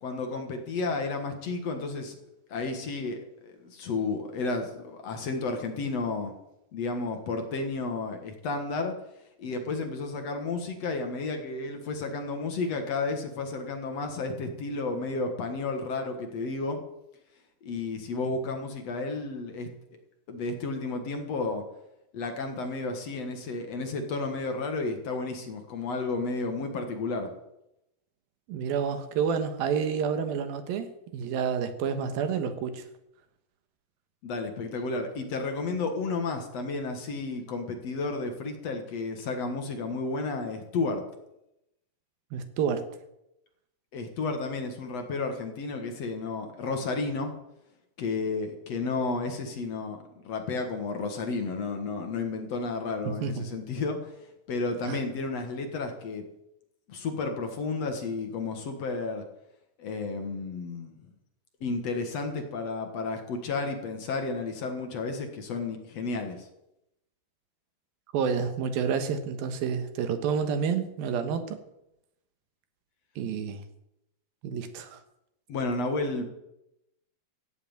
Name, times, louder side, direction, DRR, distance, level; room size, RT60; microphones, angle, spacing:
voice 1, 0.0-6.3 6.7-8.9 9.4-16.8 17.6-19.7 20.3-21.6 22.1-27.3 34.2-41.0 43.9-47.3 48.0-54.1 54.5-56.2 56.9-59.2 59.8-60.9 61.6-66.5 75.5-76.3, left 3 dB, 50° left, 2.3 m, -32 dB
voice 2, 28.5-30.9 31.1-32.8 42.3-42.8 53.1-53.5 54.8-55.0 68.1-71.6 73.2-73.6 74.4-75.0, right 6 dB, 75° right, 3.1 m, -29 dB
15.0 x 8.0 x 9.0 m
omnidirectional pair, 4.3 m